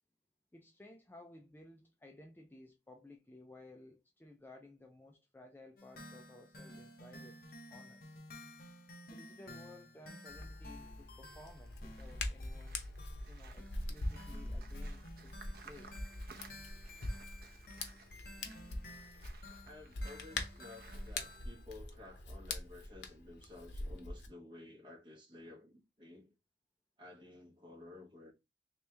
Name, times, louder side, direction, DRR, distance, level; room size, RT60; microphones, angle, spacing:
voice 1, 0.5-7.4 7.7-8.2 9.0-12.8 13.3-16.0, left 2 dB, 10° left, 0.4 m, -57 dB
sound 1, 5.8-21.7, left 1 dB, 55° left, 0.8 m, -54 dB
Hands, 10.3-24.3, left 2 dB, 85° left, 0.8 m, -44 dB
sound 2, 11.3-21.4, right 5 dB, 55° right, 0.6 m, -60 dB
voice 2, 19.6-26.3 27.0-28.3, left 2 dB, 30° right, 1.2 m, -54 dB
3.2 x 3.0 x 3.3 m
head